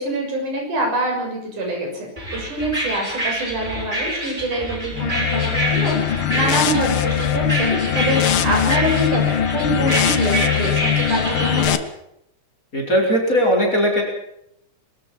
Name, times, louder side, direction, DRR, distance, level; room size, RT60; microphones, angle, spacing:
voice 1, 0.0-11.8, right 1 dB, 80° right, 1 dB, 8.1 m, -25 dB
sound 1, 2.2-11.7, right 1 dB, 15° right, 7.9 m, -27 dB
sound 2, 4.9-11.8, left 10 dB, 60° left, 1.5 m, -21 dB
voice 2, 12.7-14.0, equal, 25° left, 0 dB, 5.4 m, -18 dB
22.5 x 13.5 x 8.8 m, 0.77 s
omnidirectional pair, 3.5 m